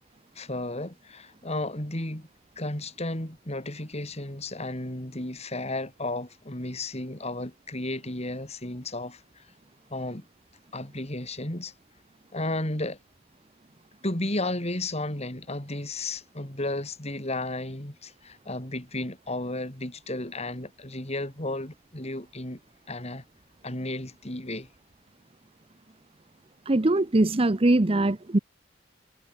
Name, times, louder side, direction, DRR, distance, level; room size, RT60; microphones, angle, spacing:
voice 1, 0.3-2.3 2.6-9.5 9.9-10.3 10.7-11.7 12.3-13.0 14.0-22.6 22.9-23.2 23.6-24.7, left 2 dB, 35° left, 4.3 m, -33 dB
voice 2, 26.7-28.4, right 2 dB, 30° right, 0.8 m, -22 dB
head